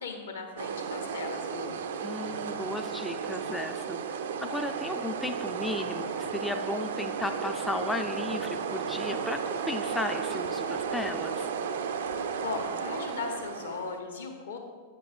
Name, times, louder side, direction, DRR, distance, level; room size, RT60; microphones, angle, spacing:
voice 1, 0.0-1.7 12.4-14.6, left 4 dB, 70° left, 3 dB, 1.2 m, -37 dB
sound 1, 0.6-14.0, right 6 dB, 60° right, 0.5 m, -34 dB
voice 2, 2.0-11.5, left 2 dB, 5° left, 6 dB, 0.4 m, -35 dB
8.2 x 5.2 x 5.0 m, 1.5 s
figure-of-eight pair, 90°, 0 cm